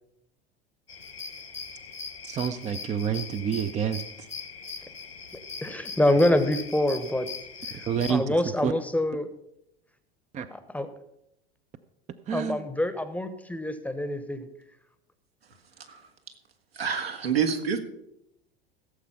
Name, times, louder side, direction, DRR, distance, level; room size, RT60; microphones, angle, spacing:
sound 1, 0.9-8.1, left 5 dB, 80° left, 2.0 m, -40 dB
voice 1, 2.2-4.3 7.9-8.4 8.6-8.7 10.3-10.5 12.3-12.6, right 7 dB, 25° right, 10 dB, 0.7 m, -28 dB
voice 2, 5.3-7.3 7.7-9.3 10.5-10.9 12.3-14.5, left 1 dB, 5° left, 11 dB, 1.0 m, -26 dB
voice 3, 16.8-17.8, right 7 dB, 75° right, 3 dB, 1.9 m, -27 dB
16.0 x 7.6 x 5.5 m, 0.81 s
figure-of-eight pair, 75°, 30 cm